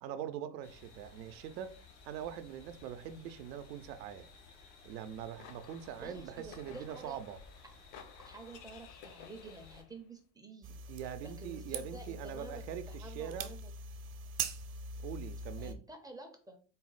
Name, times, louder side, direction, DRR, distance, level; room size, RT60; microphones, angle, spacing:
voice 1, 0.0-1.8 2.0-4.3 4.8-7.4 10.9-13.5 15.0-15.8, right 9 dB, 85° right, 0.6 m, -43 dB
sound 1, 0.6-9.8, left 3 dB, 75° left, 1.3 m, -57 dB
sound 2, 5.0-10.0, left 7 dB, 60° left, 0.8 m, -55 dB
voice 2, 6.0-7.2 7.6-7.7 8.2-10.8 11.2-13.7 15.6-16.6, right 3 dB, 10° right, 0.4 m, -50 dB
sound 3, 10.6-15.7, right 4 dB, 50° right, 0.7 m, -42 dB
4.0 x 2.1 x 3.9 m
hypercardioid pair, 100°, 49 cm